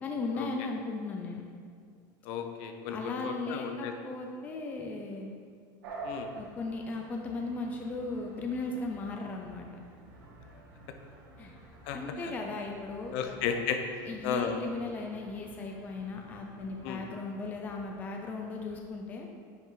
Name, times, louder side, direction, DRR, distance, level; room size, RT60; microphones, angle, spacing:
voice 1, 0.0-1.4 2.9-5.3 6.4-9.7 11.4-11.5 11.9-13.4 14.0-19.3, left 3 dB, 15° left, 1 dB, 0.5 m, -37 dB
voice 2, 2.2-3.9 6.0-6.3 11.9-12.3 13.1-13.8 14.2-14.6 16.8-17.0, left 7 dB, 50° left, 6 dB, 0.7 m, -34 dB
sound 1, 5.8-18.8, right 2 dB, 80° right, 1.9 m, -50 dB
9.8 x 5.9 x 3.8 m, 2.1 s
supercardioid pair, 175°, 10 cm